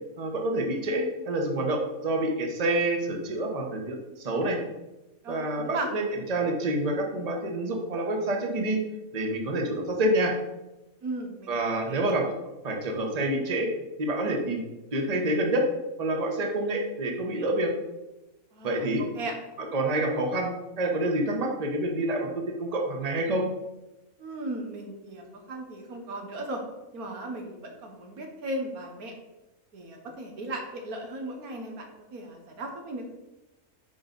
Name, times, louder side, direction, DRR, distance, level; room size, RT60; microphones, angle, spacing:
voice 1, 0.2-4.6 5.3-6.0 6.3-8.8 9.1-10.3 11.5-12.2 12.6-13.7 14.0-14.6 14.9-15.7 16.0-17.7 18.6-19.0 19.6-23.4, right 1 dB, 30° right, 2 dB, 1.1 m, -27 dB
voice 2, 5.2-5.9 11.0-12.0 18.5-19.3 24.2-26.6 26.9-29.1 29.7-33.0, right 2 dB, 90° right, 3 dB, 1.7 m, -36 dB
9.0 x 4.7 x 4.0 m, 1.0 s
omnidirectional pair, 1.5 m